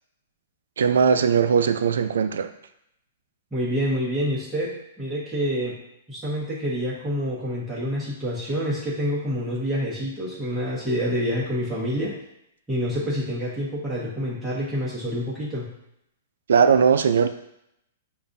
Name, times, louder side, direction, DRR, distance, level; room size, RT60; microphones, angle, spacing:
voice 1, 0.8-2.5 16.5-17.3, right 6 dB, 85° right, 9 dB, 0.4 m, -19 dB
voice 2, 3.5-5.8 6.1-12.1 12.7-15.7, equal, 5° right, -9 dB, 1.3 m, -27 dB
7.0 x 2.5 x 2.6 m, 0.79 s
hypercardioid pair, 150°, 0 cm